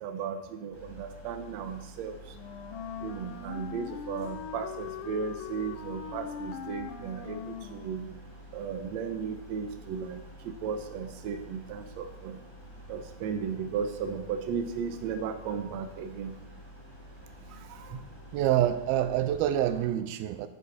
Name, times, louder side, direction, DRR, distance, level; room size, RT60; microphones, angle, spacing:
voice 1, 0.0-2.2 3.0-8.1 8.5-10.2 10.4-12.4 12.9-16.4 17.7-18.0, right 6 dB, 75° right, 7 dB, 1.6 m, -35 dB
sound 1, 0.7-19.9, equal, 45° left, 4.5 m, -49 dB
Wind instrument woodwind instrument, 2.3-8.3, left 8 dB, 75° left, 2.4 m, -41 dB
voice 2, 18.3-20.5, right 12 dB, 90° right, 11 dB, 2.6 m, -26 dB
11.0 x 10.0 x 4.2 m, 0.90 s
omnidirectional pair, 4.3 m